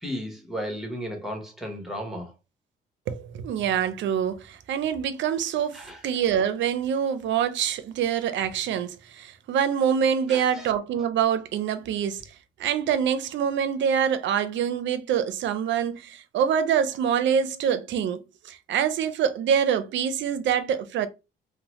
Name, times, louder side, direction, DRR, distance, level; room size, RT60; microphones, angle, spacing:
voice 1, 0.0-2.3 5.7-6.0 10.3-10.7, equal, ahead, 0.9 m, -34 dB
voice 2, 3.1-12.3 12.6-21.1, right 8 dB, 70° right, 0.4 m, -25 dB
2.7 x 2.0 x 3.0 m
cardioid pair, 90°, 20 cm